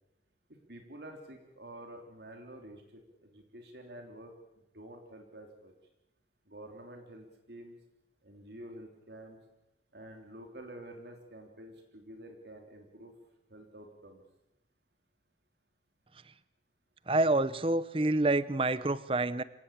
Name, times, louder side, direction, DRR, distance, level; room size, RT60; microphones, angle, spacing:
voice 1, 0.7-4.3 4.7-5.7 6.5-7.8 8.2-9.4 9.9-13.1 13.5-14.2, right 1 dB, 65° right, 3 dB, 3.1 m, -49 dB
voice 2, 17.1-19.4, right 2 dB, 30° right, 16 dB, 0.8 m, -28 dB
26.5 x 17.0 x 8.7 m, 0.95 s
head